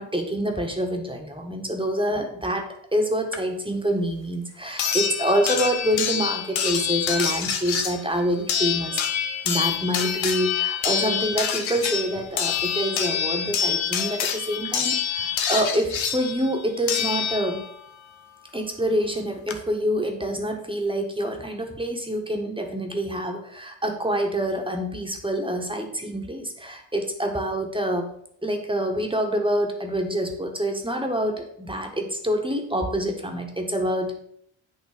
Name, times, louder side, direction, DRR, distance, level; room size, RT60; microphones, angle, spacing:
voice 1, 0.0-9.0 9.4-17.6 18.5-28.0 28.4-34.1, equal, 10° right, 2 dB, 1.4 m, -26 dB
sound 1, 3.3-3.4 4.8-17.8 19.0-19.1 19.5-19.6, left 8 dB, 70° left, 0.9 m, -26 dB
8.5 x 3.0 x 5.0 m, 0.69 s
supercardioid pair, 55°, 47 cm